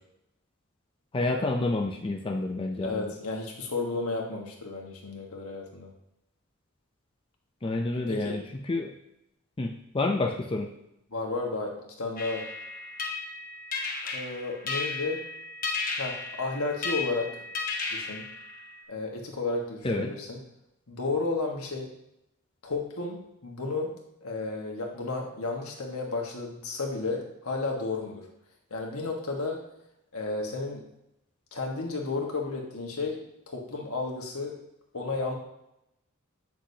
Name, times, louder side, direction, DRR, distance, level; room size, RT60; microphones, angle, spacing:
voice 1, 1.1-3.1 7.6-8.9 9.6-10.7 19.8-20.1, left 2 dB, 25° left, 2 dB, 0.4 m, -29 dB
voice 2, 2.8-5.9 8.1-8.4 11.1-12.5 14.0-15.3 16.0-17.4 17.9-18.2 18.9-20.4 20.9-21.9 22.6-24.0 24.2-28.2 28.7-29.6 30.1-30.8 31.5-34.6 34.9-35.3, left 3 dB, 80° left, 0 dB, 1.5 m, -32 dB
sound 1, 12.2-18.8, left 4 dB, 40° left, 0.9 m, -34 dB
8.2 x 6.1 x 2.7 m, 0.83 s
head